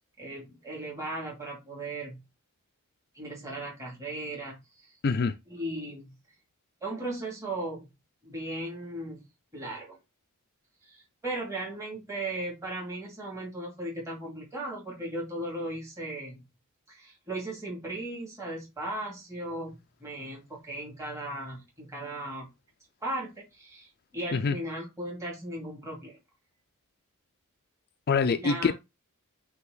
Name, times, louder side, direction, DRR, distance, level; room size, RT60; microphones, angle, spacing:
voice 1, 0.2-2.2 3.1-4.9 5.5-6.1 6.8-7.9 8.2-9.2 9.5-10.0 10.8-16.4 16.9-22.5 23.0-26.2 28.3-28.7, right 1 dB, 15° right, 2.5 m, -37 dB
voice 2, 5.0-5.3 24.3-24.5 28.1-28.7, left 5 dB, 45° left, 0.4 m, -25 dB
8.3 x 2.9 x 3.9 m
head